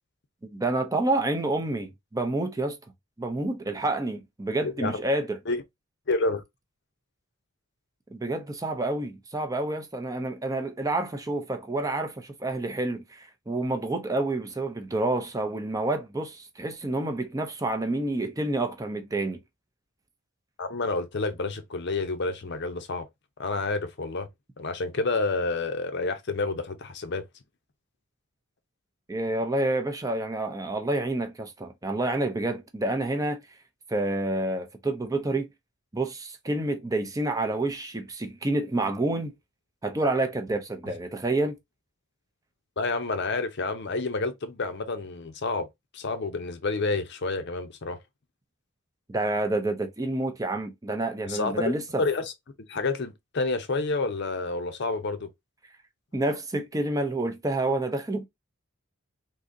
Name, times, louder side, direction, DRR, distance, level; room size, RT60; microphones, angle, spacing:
voice 1, 0.4-2.8 3.2-5.4 8.1-19.4 29.1-33.4 33.9-35.5 35.9-39.3 39.8-41.6 49.1-52.0 56.1-58.3, right 2 dB, 15° right, 0.5 m, -28 dB
voice 2, 4.6-5.0 5.5-5.6 6.1-6.4 20.6-23.1 23.4-24.3 24.6-27.2 42.8-45.7 45.9-48.0 51.2-52.3 52.7-55.3, left 3 dB, 50° left, 0.6 m, -29 dB
3.7 x 2.7 x 2.6 m
head